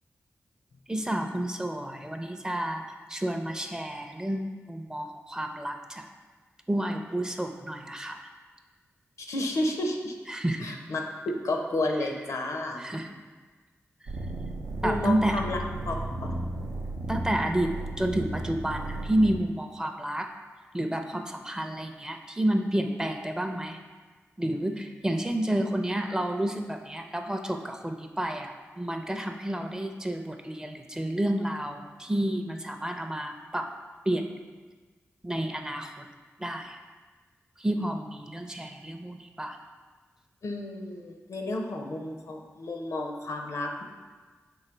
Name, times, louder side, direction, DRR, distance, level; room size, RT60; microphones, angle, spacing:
voice 1, 0.9-2.8 3.1-6.0 6.7-8.3 10.3-10.7 12.8-13.2 14.8-15.4 17.1-20.3 20.7-23.8 24.4-33.7 34.1-34.2 35.2-36.1 36.4-36.8 37.6-39.6, right 1 dB, 10° right, 5 dB, 0.4 m, -30 dB
voice 2, 9.2-10.1 10.6-12.8 14.8-15.6 15.9-16.0 16.2-16.3 40.4-43.8, left 1 dB, 75° left, 2 dB, 0.5 m, -31 dB
sound 1, 14.1-19.4, right 1 dB, 85° right, 0.5 m, -34 dB
3.8 x 2.8 x 4.4 m, 1.4 s
cardioid pair, 40°, 6 cm